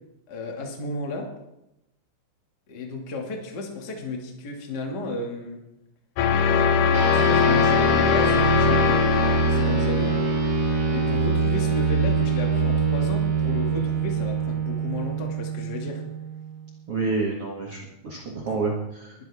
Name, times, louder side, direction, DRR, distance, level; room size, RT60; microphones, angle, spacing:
voice 1, 0.3-1.3 2.7-5.6 6.5-10.2 10.9-16.0 17.8-17.9 18.4-18.5, left 2 dB, 40° left, 1 dB, 1.5 m, -33 dB
sound 1, 6.2-12.2, left 7 dB, 80° left, 2.4 m, -22 dB
sound 2, 6.9-16.7, right 5 dB, 45° right, 3.4 m, -24 dB
voice 2, 16.9-17.8 18.0-19.2, right 3 dB, 85° right, -3 dB, 1.3 m, -28 dB
21.0 x 11.0 x 3.6 m, 0.88 s
omnidirectional pair, 5.7 m